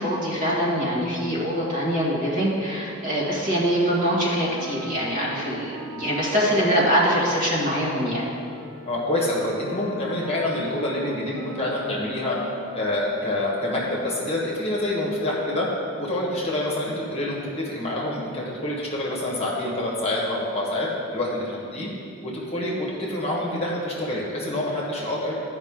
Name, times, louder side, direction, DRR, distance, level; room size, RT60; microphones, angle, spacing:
voice 1, 0.0-8.3, equal, 40° right, -6 dB, 1.9 m, -23 dB
Wind instrument woodwind instrument, 4.0-12.8, right 2 dB, 65° right, 1.9 m, -41 dB
voice 2, 8.8-12.4 12.7-15.7 16.0-21.9 22.2-25.4, left 1 dB, 30° left, -4 dB, 1.3 m, -27 dB
13.0 x 5.2 x 3.7 m, 2.6 s
head